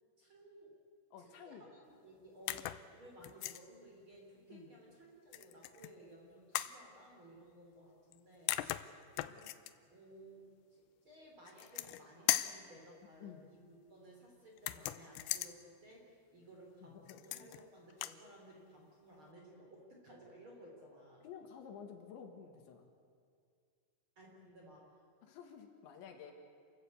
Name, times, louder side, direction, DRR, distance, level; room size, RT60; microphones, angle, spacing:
voice 1, 0.2-0.8 1.2-8.7 9.1-21.3 24.1-25.0, right 1 dB, 30° right, -1 dB, 3.3 m, -58 dB
voice 2, 1.1-1.7 4.5-4.7 13.2-13.5 16.8-17.2 21.2-22.9 25.2-26.3, left 7 dB, 70° left, 4 dB, 3.7 m, -52 dB
sound 1, 2.5-2.8 3.2-3.6 5.3-5.9 6.5-6.8 8.1-8.2 8.5-9.7 11.5-12.0 12.3-12.6 14.6-15.5 17.1-17.6 17.9-18.2, left 15 dB, 85° left, 2.4 m, -38 dB
28.5 x 15.0 x 8.4 m, 2.3 s
omnidirectional pair, 5.7 m